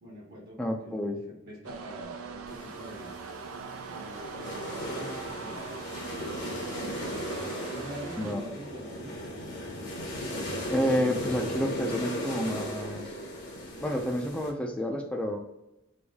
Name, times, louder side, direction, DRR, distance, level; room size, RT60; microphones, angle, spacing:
voice 1, 0.0-3.1 3.9-6.6 7.7-9.1, right 1 dB, 55° right, -4 dB, 1.1 m, -45 dB
voice 2, 0.6-1.2 8.2-8.5 10.7-13.1 13.8-15.4, equal, 5° left, 1 dB, 0.4 m, -29 dB
sound 1, 1.6-8.3, right 5 dB, 80° right, 0.4 m, -42 dB
sound 2, 2.5-14.5, equal, 60° left, 0.9 m, -37 dB
3.4 x 2.6 x 3.5 m, 0.91 s
head